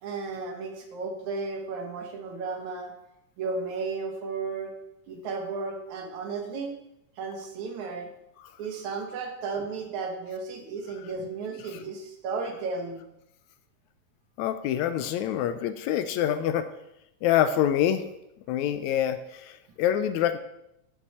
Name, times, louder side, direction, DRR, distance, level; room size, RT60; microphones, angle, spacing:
voice 1, 0.0-2.9 3.4-4.7 5.1-6.7 7.2-8.1 8.6-13.1, right 4 dB, 70° right, 3 dB, 2.8 m, -34 dB
voice 2, 14.4-16.7 17.2-18.0 18.5-20.4, left 10 dB, 80° left, 11 dB, 1.8 m, -26 dB
11.0 x 8.2 x 4.2 m, 0.83 s
omnidirectional pair, 3.5 m